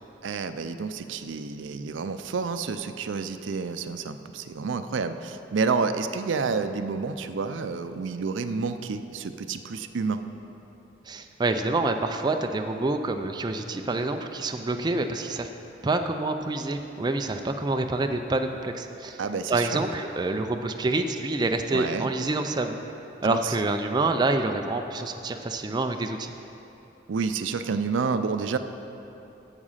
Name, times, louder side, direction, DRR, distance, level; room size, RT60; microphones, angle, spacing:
voice 1, 0.2-10.3 19.2-19.8 21.7-22.1 23.2-23.6 27.1-28.6, right 5 dB, 80° right, 10 dB, 0.4 m, -29 dB
voice 2, 11.1-15.5 15.8-19.2 19.5-22.8 23.2-26.3, right 2 dB, 25° right, 6 dB, 0.4 m, -27 dB
9.8 x 7.3 x 5.6 m, 3.0 s
head